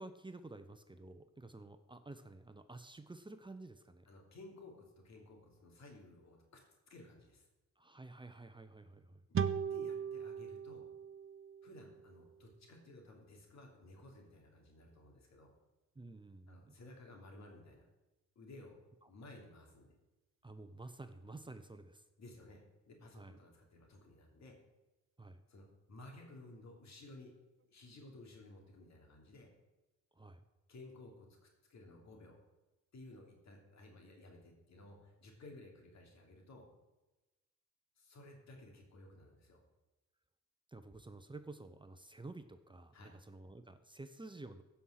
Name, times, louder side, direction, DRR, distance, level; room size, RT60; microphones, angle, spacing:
voice 1, 0.0-4.1 7.8-9.2 15.9-16.7 19.0-19.1 20.4-22.0 23.1-23.4 25.2-25.4 30.1-30.4 40.7-44.6, right 2 dB, 15° right, 9 dB, 0.9 m, -51 dB
voice 2, 4.1-4.7 5.0-6.6 6.9-7.5 9.7-10.9 11.6-15.5 16.5-17.8 18.3-18.8 19.1-19.9 22.2-24.6 25.5-27.3 27.7-29.5 30.7-32.4 32.9-36.7 38.0-39.6 42.9-43.1, left 2 dB, 65° left, 1 dB, 3.1 m, -56 dB
sound 1, 9.3-12.7, right 7 dB, 45° right, 0.8 m, -39 dB
15.0 x 5.8 x 6.6 m, 1.1 s
cardioid pair, 75°, 29 cm